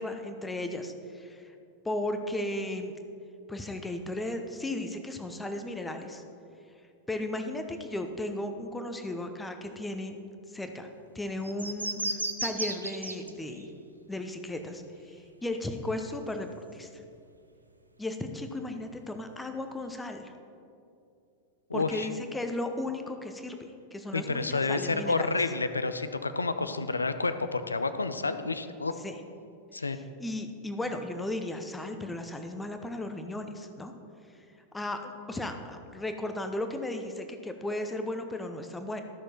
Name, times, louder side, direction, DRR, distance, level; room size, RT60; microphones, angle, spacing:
voice 1, 0.0-1.5 1.8-2.9 3.5-6.2 7.1-10.2 10.5-10.9 11.1-13.7 14.1-16.5 16.7-16.9 18.0-20.3 21.7-23.6 23.9-25.3 29.0-29.2 29.9-30.0 30.2-33.9 34.7-39.0, left 1 dB, 10° left, 6 dB, 0.8 m, -35 dB
sound 1, 11.4-13.3 13.6-13.7, right 2 dB, 85° right, 0.6 m, -33 dB
voice 2, 21.7-22.1 24.1-28.9 29.7-30.0, left 3 dB, 80° left, 11 dB, 0.5 m, -29 dB
13.5 x 6.4 x 4.4 m, 2.5 s
figure-of-eight pair, 90°, 0 cm